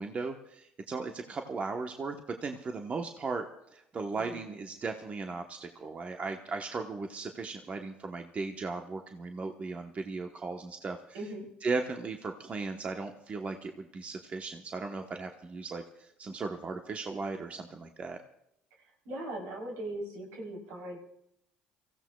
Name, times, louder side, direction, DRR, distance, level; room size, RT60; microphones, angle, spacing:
voice 1, 0.0-3.4 3.7-11.2 11.6-18.2, right 4 dB, 40° right, 4 dB, 1.0 m, -37 dB
voice 2, 11.1-11.5 19.1-21.0, right 1 dB, 80° right, -1 dB, 3.6 m, -39 dB
28.0 x 15.5 x 2.3 m, 0.80 s
supercardioid pair, 70°, 4 cm